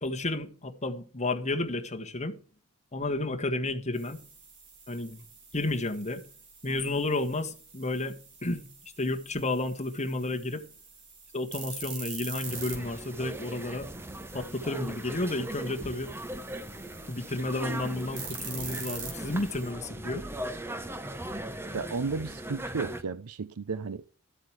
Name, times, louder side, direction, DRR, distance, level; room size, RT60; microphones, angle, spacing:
voice 1, 0.0-2.3 2.9-4.2 4.9-5.2 5.5-6.2 6.6-8.7 9.0-10.6 11.3-13.9 14.3-16.1 17.1-20.2, left 2 dB, 30° left, 1.6 m, -31 dB
sound 1, 3.9-19.7, right 5 dB, 55° right, 4.4 m, -45 dB
sound 2, 12.5-23.0, right 1 dB, 10° right, 0.9 m, -39 dB
voice 2, 21.7-24.0, right 4 dB, 85° right, 0.6 m, -33 dB
13.5 x 8.1 x 4.8 m
head